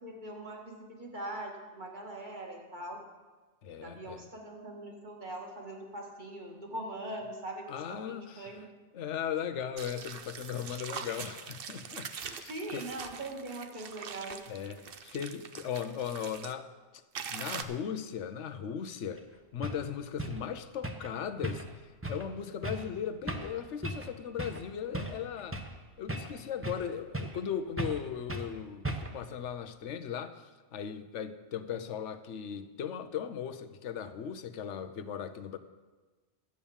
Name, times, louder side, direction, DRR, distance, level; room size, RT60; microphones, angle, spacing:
voice 1, 0.0-3.0 3.8-7.8 8.1-8.6 12.5-14.4, right 1 dB, 40° right, 2.2 m, -41 dB
voice 2, 3.6-4.3 7.7-8.7 8.9-12.8 14.5-16.7 17.3-19.2 19.5-25.6 26.0-35.6, left 8 dB, 85° left, 1.1 m, -38 dB
sound 1, 9.8-16.5 17.1-17.6, right 7 dB, 55° right, 0.9 m, -43 dB
sound 2, 19.2-19.3 19.6-19.8 20.2-20.4 20.8-21.1 21.4-21.8 22.0-22.3 22.6-22.9 23.3-23.5 23.8-24.1 24.4-24.6 24.9-25.8 26.1-26.9 27.1-27.4 27.8-28.0 28.3-28.5 28.8-29.2, right 1 dB, 10° right, 0.9 m, -37 dB
12.5 x 8.6 x 7.2 m
omnidirectional pair, 1.2 m